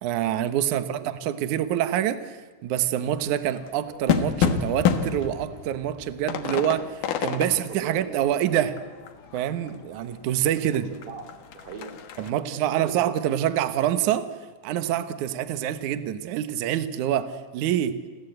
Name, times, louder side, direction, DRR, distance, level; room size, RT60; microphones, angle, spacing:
voice 1, 0.0-8.7 9.3-10.9 12.2-14.3 14.6-18.0, right 11 dB, 85° right, 11 dB, 1.7 m, -26 dB
voice 2, 0.6-1.1 7.3-8.3 10.6-10.8 11.1-13.1, right 5 dB, 65° right, 5 dB, 5.3 m, -41 dB
sound 1, 3.1-10.0 10.4-10.5 10.7-12.3, left 7 dB, 60° left, 2.4 m, -29 dB
29.5 x 23.5 x 8.0 m, 1.3 s
omnidirectional pair, 5.4 m